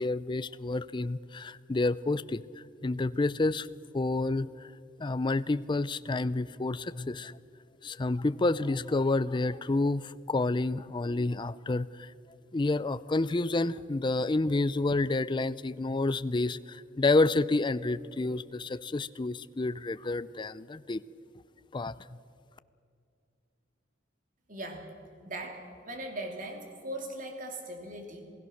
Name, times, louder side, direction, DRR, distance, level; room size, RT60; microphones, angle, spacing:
voice 1, 0.0-2.4 2.8-3.7 3.9-4.7 5.0-7.4 7.8-12.1 12.5-21.0 21.7-21.9, left 2 dB, 25° left, 16 dB, 0.4 m, -29 dB
voice 2, 24.5-24.9 25.3-28.3, right 1 dB, 45° right, 3 dB, 3.0 m, -39 dB
27.5 x 16.5 x 6.5 m, 2.4 s
head